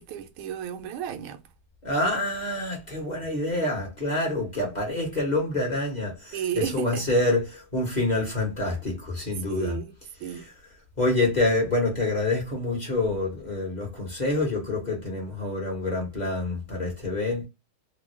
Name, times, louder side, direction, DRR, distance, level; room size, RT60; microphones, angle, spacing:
voice 1, 0.0-1.4 6.3-7.0 9.4-9.9 10.2-10.5, right 9 dB, 80° right, 1.5 m, -32 dB
voice 2, 1.8-9.8 10.3-10.5 11.0-17.5, left 2 dB, 30° left, 0.9 m, -27 dB
3.6 x 2.3 x 3.1 m
omnidirectional pair, 2.3 m